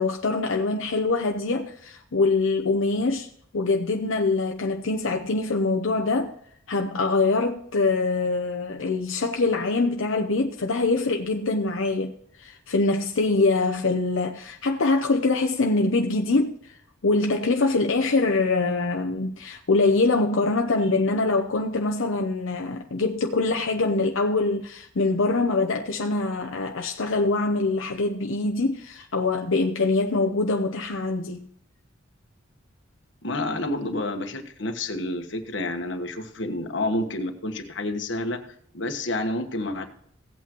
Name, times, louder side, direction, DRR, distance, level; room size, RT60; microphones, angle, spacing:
voice 1, 0.0-3.3 3.5-6.3 6.7-12.1 12.4-16.8 17.0-31.5, left 3 dB, 85° left, 0.7 m, -24 dB
voice 2, 33.2-38.4 38.7-39.9, left 1 dB, 65° left, 1.3 m, -29 dB
16.5 x 8.4 x 3.0 m
head